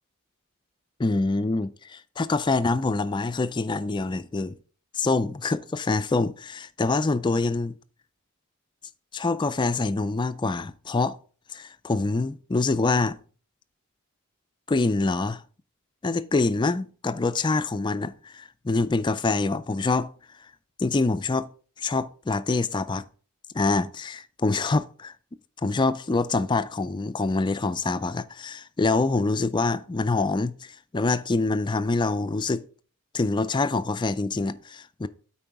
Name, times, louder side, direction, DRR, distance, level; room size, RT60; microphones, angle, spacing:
voice 1, 1.0-4.6 4.9-7.7 9.1-11.2 11.5-13.2 14.7-15.4 16.0-20.1 20.8-21.5 21.8-23.0 23.5-25.1 25.6-32.6 33.1-35.1, left 3 dB, 20° left, 0.3 m, -25 dB
8.8 x 4.7 x 4.6 m
head